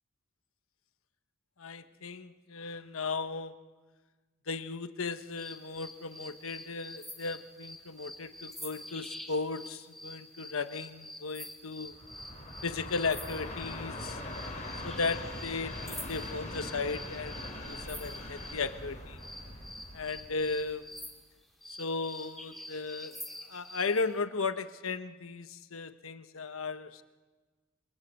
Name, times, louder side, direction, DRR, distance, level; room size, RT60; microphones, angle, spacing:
voice 1, 1.6-3.5 4.5-12.0 12.6-14.2 14.8-19.2 19.9-20.9 21.7-23.2 23.5-27.0, left 4 dB, 90° left, 10 dB, 1.1 m, -36 dB
sound 1, 5.4-18.6 19.2-23.9, left 1 dB, ahead, 3.6 m, -46 dB
Train, 11.8-21.0, left 1 dB, 35° left, 4.4 m, -42 dB
29.0 x 25.0 x 8.2 m, 1.3 s
head